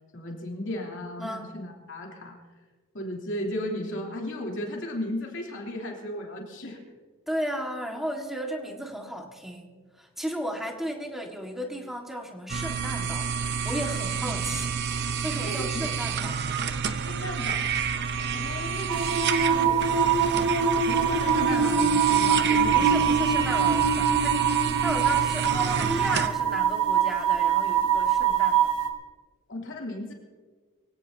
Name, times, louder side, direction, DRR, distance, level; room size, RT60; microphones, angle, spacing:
voice 1, 0.1-2.4 2.9-6.8 14.2-14.5 15.4-15.9 17.0-17.6 18.3-19.8 20.8-23.4 29.5-30.1, left 1 dB, 55° left, 0 dB, 3.1 m, -35 dB
voice 2, 1.2-1.5 7.3-9.7 10.0-16.4 22.7-28.7, equal, ahead, 1 dB, 1.7 m, -35 dB
sound 1, 12.5-26.3, right 6 dB, 50° right, 0.7 m, -30 dB
sound 2, 18.9-28.9, right 7 dB, 85° right, 1.6 m, -23 dB
24.0 x 16.5 x 2.8 m, 1.5 s
head